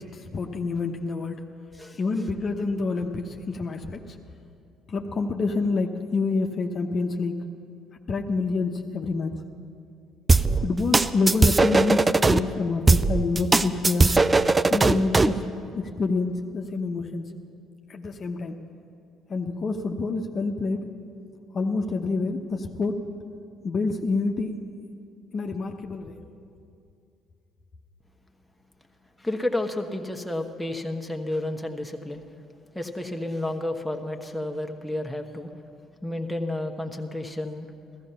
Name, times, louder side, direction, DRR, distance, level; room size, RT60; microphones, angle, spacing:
voice 1, 0.0-1.4 1.9-4.2 4.9-7.4 8.1-9.4 10.6-14.1 14.7-17.2 17.9-18.5 19.3-20.8 21.5-23.0 23.6-24.5 25.3-26.2, left 3 dB, 45° left, 3 dB, 1.0 m, -27 dB
sound 1, 10.3-12.4 12.9-15.4, right 3 dB, 25° right, 0.5 m, -19 dB
voice 2, 29.2-32.2 32.7-35.5 36.0-37.7, left 1 dB, 5° left, 3 dB, 1.3 m, -31 dB
15.0 x 14.5 x 5.7 m, 2.5 s
hypercardioid pair, 55°, 0 cm